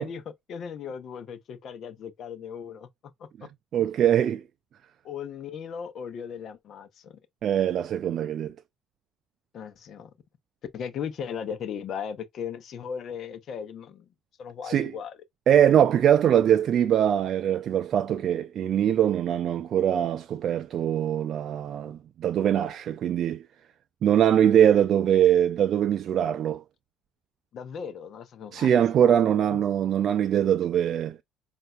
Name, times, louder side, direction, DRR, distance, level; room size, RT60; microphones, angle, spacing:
voice 1, 0.0-2.9 3.2-3.3 3.8-3.9 5.0-7.2 9.5-10.1 10.7-14.0 14.4-15.2 27.5-29.6, left 7 dB, 55° left, 0.8 m, -37 dB
voice 2, 3.7-4.4 7.4-8.5 14.7-14.9 15.5-23.4 24.0-26.6 28.5-31.2, right 10 dB, 55° right, 0.3 m, -22 dB
5.4 x 2.5 x 2.3 m
supercardioid pair, 95°, 0 cm